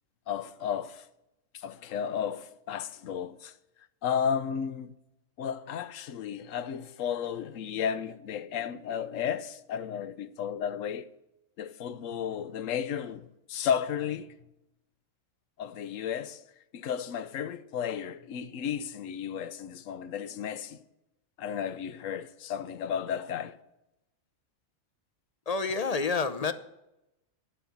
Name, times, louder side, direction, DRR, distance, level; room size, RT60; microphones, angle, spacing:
voice 1, 0.3-1.0 1.5-3.5 4.0-4.9 5.4-11.1 11.6-14.3 15.6-16.4 16.7-20.8 21.4-23.6, left 8 dB, 75° left, 1.1 m, -33 dB
voice 2, 25.5-26.5, left 4 dB, 35° left, 0.7 m, -28 dB
11.5 x 9.8 x 7.2 m
omnidirectional pair, 1.4 m